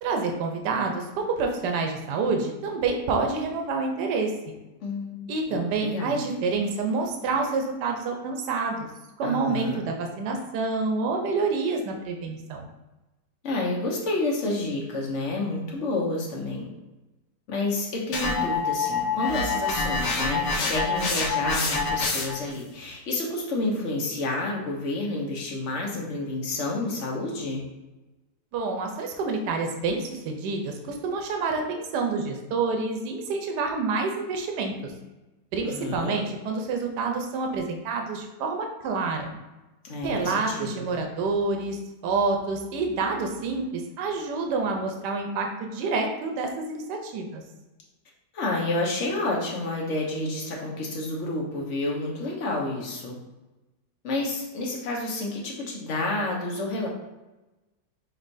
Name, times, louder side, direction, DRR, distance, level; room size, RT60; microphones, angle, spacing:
voice 1, 0.0-4.3 5.3-8.9 9.2-12.7 28.5-34.9 35.5-39.3 40.0-41.8 42.0-47.4, right 4 dB, 80° right, 3 dB, 1.3 m, -28 dB
voice 2, 4.8-5.2 5.5-6.2 9.2-9.8 13.4-16.7 17.5-27.6 35.6-36.2 39.8-40.9 48.3-53.1 54.0-56.9, left 2 dB, 50° left, -1 dB, 1.2 m, -29 dB
sound 1, 18.1-22.5, left 4 dB, 90° left, 1.4 m, -26 dB
5.3 x 3.3 x 2.6 m, 1.1 s
omnidirectional pair, 1.8 m